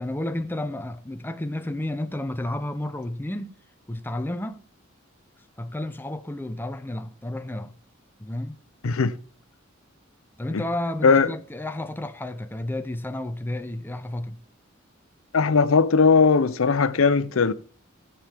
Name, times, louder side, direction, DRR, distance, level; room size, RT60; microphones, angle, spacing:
voice 1, 0.0-3.6 3.9-4.6 5.6-7.7 8.2-8.6 10.4-14.4, left 1 dB, 10° left, 0.6 m, -31 dB
voice 2, 8.8-9.2 10.5-10.6 11.0-11.3 15.3-17.5, left 4 dB, 85° left, 0.6 m, -19 dB
16.0 x 7.3 x 3.5 m
head